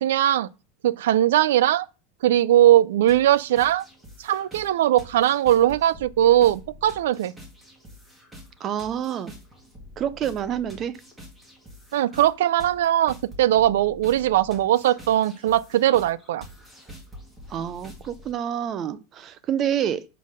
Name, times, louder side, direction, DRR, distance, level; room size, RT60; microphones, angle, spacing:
voice 1, 0.0-0.5 0.8-1.9 2.2-3.9 4.2-7.3 11.9-16.5, right 12 dB, 85° right, 0.4 m, -20 dB
sound 1, 3.1-18.3, left 1 dB, 10° right, 1.6 m, -46 dB
voice 2, 8.6-9.3 10.0-11.0 17.5-20.1, right 9 dB, 25° right, 0.5 m, -28 dB
5.5 x 4.2 x 6.2 m
supercardioid pair, 170°, 0 cm